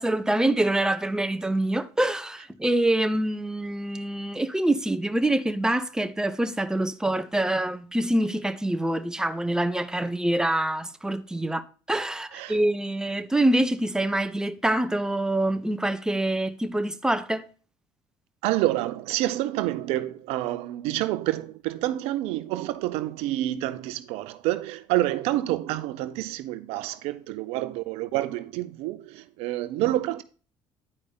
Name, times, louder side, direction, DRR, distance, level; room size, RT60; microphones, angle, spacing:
voice 1, 0.0-17.5, right 1 dB, 5° right, 0.9 m, -25 dB
voice 2, 18.4-30.2, right 15 dB, 75° right, 0.6 m, -28 dB
9.8 x 4.9 x 4.0 m
hypercardioid pair, 70°, 10 cm